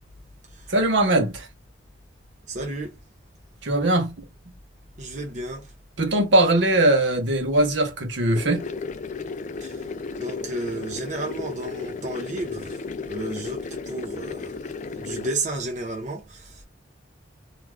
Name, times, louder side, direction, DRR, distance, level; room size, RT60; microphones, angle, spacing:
voice 1, 0.7-1.5 3.6-4.1 6.0-8.6, right 1 dB, 70° right, 0.9 m, -20 dB
voice 2, 2.5-3.0 5.0-5.7 9.6-9.9 10.2-14.7 14.9-16.6, right 2 dB, 40° right, 0.5 m, -33 dB
sound 1, 8.3-15.3, left 4 dB, 40° left, 0.3 m, -34 dB
2.4 x 2.4 x 3.2 m
head